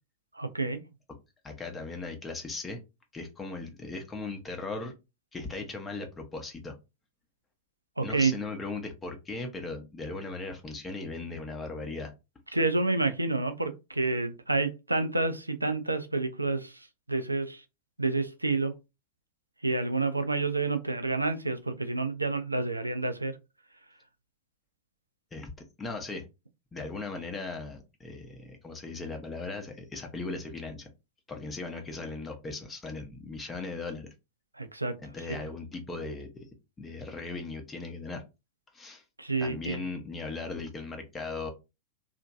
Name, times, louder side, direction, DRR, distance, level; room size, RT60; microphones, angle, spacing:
voice 1, 0.4-0.8 8.0-8.3 12.5-16.8 17.1-17.6 18.0-18.8 19.6-23.4 34.6-35.0 35.3-35.4 39.2-39.8, right 3 dB, 85° right, 0.4 m, -29 dB
voice 2, 1.4-2.8 3.1-4.9 5.3-6.8 8.0-12.1 25.3-25.5 25.8-26.3 26.7-30.9 31.3-34.1 35.0-36.5 36.8-38.2 38.7-39.0 39.4-41.5, left 3 dB, 15° left, 0.6 m, -38 dB
2.9 x 2.5 x 2.4 m
figure-of-eight pair, 90°, 0 cm